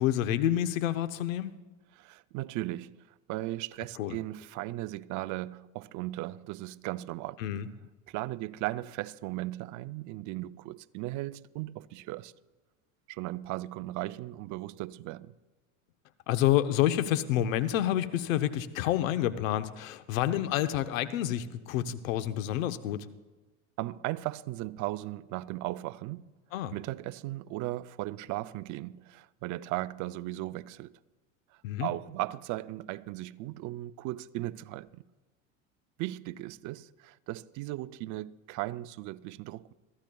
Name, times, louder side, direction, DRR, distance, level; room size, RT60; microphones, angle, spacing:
voice 1, 0.0-1.5 4.0-4.2 7.4-7.7 16.3-23.1 26.5-26.7 31.6-31.9, left 12 dB, 80° left, 0.9 m, -28 dB
voice 2, 1.9-3.0 3.3-7.4 8.1-12.3 13.1-15.3 23.8-26.3 26.7-31.0 31.8-35.0 36.0-39.7, right 17 dB, 50° right, 0.5 m, -37 dB
22.5 x 13.5 x 2.3 m
supercardioid pair, 100°, 39 cm